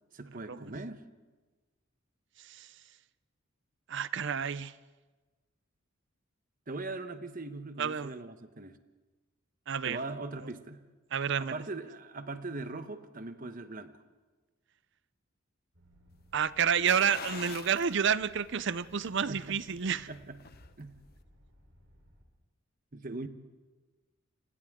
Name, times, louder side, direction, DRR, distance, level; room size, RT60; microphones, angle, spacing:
voice 1, 0.1-1.0 6.7-8.8 9.8-10.8 11.4-14.0 19.3-20.4 20.8-20.9 22.9-23.3, right 3 dB, 40° right, 10 dB, 1.1 m, -40 dB
voice 2, 3.9-4.7 7.8-8.1 9.7-10.0 11.1-11.6 16.3-20.1, right 7 dB, 60° right, 17 dB, 0.6 m, -29 dB
sound 1, 15.7-22.2, equal, 75° right, 3.9 m, -61 dB
sound 2, 16.9-17.9 18.4-18.5 20.0-20.8 21.1-21.2, left 7 dB, 50° left, 0.7 m, -43 dB
29.5 x 26.5 x 3.7 m, 1.3 s
head